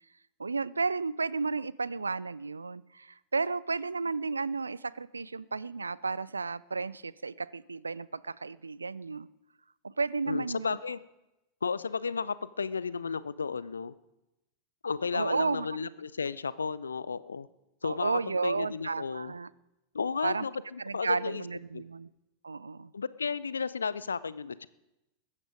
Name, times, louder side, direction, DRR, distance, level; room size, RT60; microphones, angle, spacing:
voice 1, 0.4-9.3 9.8-10.9 15.1-15.7 17.8-19.5 20.2-20.5 20.8-22.1 22.4-22.9, right 4 dB, 75° right, 20 dB, 0.4 m, -33 dB
voice 2, 10.3-11.0 11.6-13.9 14.8-17.5 17.8-19.3 19.9-21.4 21.7-21.8 22.9-24.7, left 5 dB, 75° left, 18 dB, 0.5 m, -33 dB
20.5 x 9.7 x 5.1 m, 0.97 s
figure-of-eight pair, 90°, 0 cm